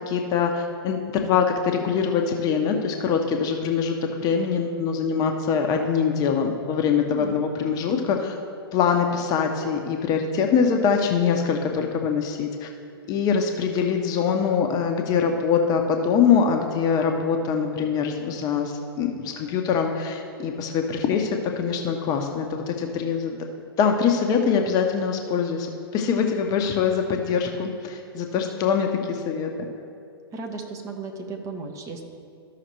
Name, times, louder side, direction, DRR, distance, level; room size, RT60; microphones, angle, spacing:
voice 1, 0.1-8.3 8.7-12.7 13.1-21.3 21.6-23.4 23.8-25.7 25.9-29.5, left 6 dB, 30° left, 3 dB, 0.8 m, -23 dB
voice 2, 30.3-32.0, right 4 dB, 25° right, 3 dB, 1.0 m, -35 dB
13.5 x 5.7 x 3.2 m, 2.5 s
figure-of-eight pair, 110°, 13 cm